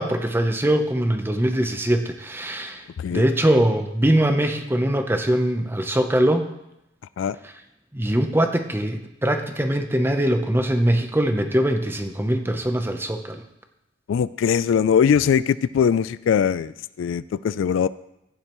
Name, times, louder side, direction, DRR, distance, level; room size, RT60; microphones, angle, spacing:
voice 1, 0.0-2.8 3.1-6.5 7.9-13.4, right 1 dB, 10° right, 6 dB, 0.7 m, -22 dB
voice 2, 14.1-17.9, left 7 dB, 75° left, 17 dB, 0.3 m, -21 dB
14.5 x 10.0 x 3.0 m, 0.86 s
head